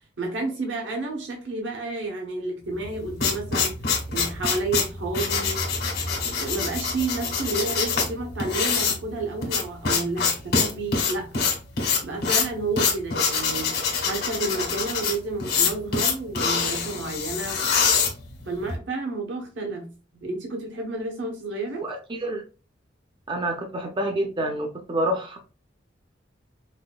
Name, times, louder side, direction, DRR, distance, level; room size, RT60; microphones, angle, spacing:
voice 1, 0.2-3.7 4.1-5.6 6.4-11.5 12.0-13.7 14.0-17.6 18.5-21.9, right 3 dB, 75° right, 1.0 m, -31 dB
sound 1, 2.8-18.8, left 5 dB, 60° left, 1.6 m, -25 dB
voice 2, 21.8-22.4 23.3-25.4, right 1 dB, 25° right, 0.6 m, -28 dB
5.3 x 2.6 x 2.3 m
head